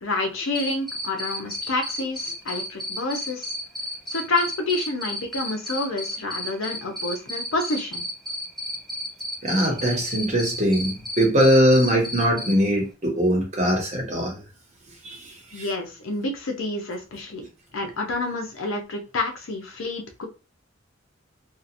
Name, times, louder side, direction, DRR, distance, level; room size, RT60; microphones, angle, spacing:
voice 1, 0.0-3.5 4.1-8.0 15.5-17.5 17.7-20.3, left 2 dB, 85° left, 3 dB, 0.7 m, -28 dB
Cricket, 0.5-12.5, equal, ahead, 0.4 m, -32 dB
voice 2, 9.4-14.4 15.0-15.2 15.6-15.7, equal, 35° right, -1 dB, 1.0 m, -21 dB
2.8 x 2.4 x 2.5 m, 0.31 s
head